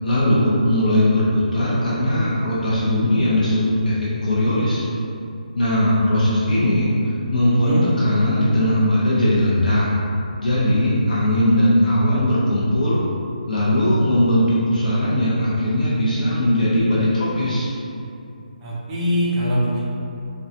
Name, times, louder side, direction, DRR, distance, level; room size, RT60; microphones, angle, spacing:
voice 1, 0.0-4.8 5.5-7.7 8.0-9.9 10.4-13.0 13.5-17.7, left 1 dB, 70° left, -8 dB, 0.8 m, -19 dB
voice 2, 7.5-7.8 18.6-19.8, equal, 10° right, -8 dB, 0.3 m, -22 dB
3.8 x 2.3 x 2.7 m, 2.6 s
hypercardioid pair, 175°, 5 cm